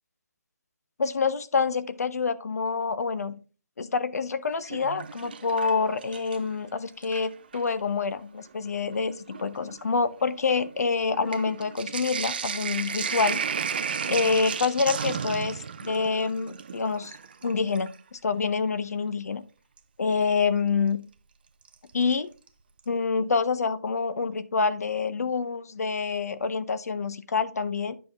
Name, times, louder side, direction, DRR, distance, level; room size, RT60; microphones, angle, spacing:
voice 1, 1.0-3.3 3.8-13.4 14.1-17.2 17.4-19.4 20.0-21.0 21.9-22.3 22.9-27.9, left 4 dB, 60° left, 14 dB, 0.8 m, -27 dB
Sink (filling or washing), 4.5-6.5 6.9-7.7 8.5-8.6 8.9-18.0 19.8-19.9 21.7-22.1 22.5-22.6 22.8-22.9, right 6 dB, 35° right, 0.5 m, -34 dB
9.6 x 5.6 x 3.4 m, 0.35 s
hypercardioid pair, 170°, 9 cm